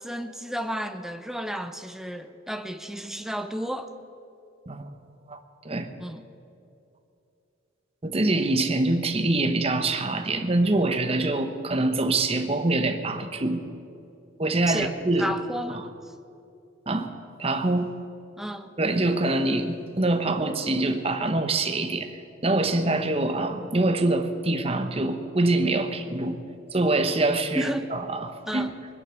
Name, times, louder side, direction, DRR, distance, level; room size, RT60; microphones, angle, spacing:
voice 1, 0.0-3.9 6.0-6.3 14.7-16.1 18.4-18.7 27.6-27.9 28.5-28.7, equal, ahead, 8 dB, 0.5 m, -33 dB
voice 2, 8.0-13.6 14.4-15.3 15.7-15.8 16.9-17.1 17.4-17.9 18.8-22.1 22.4-26.4 26.7-28.7, right 2 dB, 30° right, 7 dB, 1.0 m, -25 dB
21.0 x 10.0 x 6.4 m, 2.6 s
head